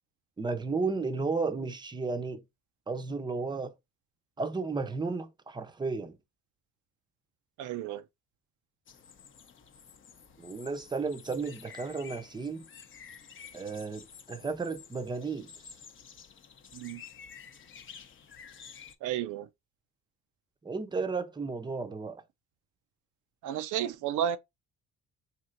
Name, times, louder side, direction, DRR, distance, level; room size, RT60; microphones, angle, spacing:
voice 1, 0.4-2.4 2.9-3.7 4.4-6.2 10.4-12.7 13.5-15.5 20.6-22.2, right 4 dB, 15° right, 0.6 m, -33 dB
voice 2, 7.6-8.0 16.7-17.0 19.0-19.5 23.4-24.4, right 10 dB, 80° right, 0.5 m, -32 dB
sound 1, 8.9-19.0, left 7 dB, 40° left, 0.6 m, -51 dB
4.4 x 2.8 x 2.5 m
cardioid pair, 90°, 30 cm